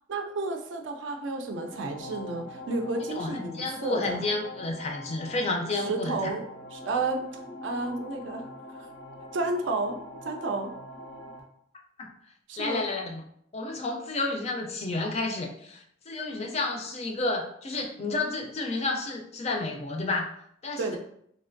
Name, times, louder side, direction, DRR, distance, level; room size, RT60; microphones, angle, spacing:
voice 1, 0.1-4.2 5.7-6.4 6.7-8.9 9.3-10.7 12.5-12.8 20.8-21.0, right 3 dB, 75° right, 4 dB, 0.4 m, -32 dB
sound 1, 1.4-11.4, left 1 dB, 85° left, 0.8 m, -43 dB
voice 2, 3.2-6.2 12.0-12.1 12.6-13.2 13.5-20.3 20.6-21.0, left 2 dB, 35° left, 2 dB, 0.4 m, -31 dB
3.1 x 2.5 x 2.5 m, 0.70 s
head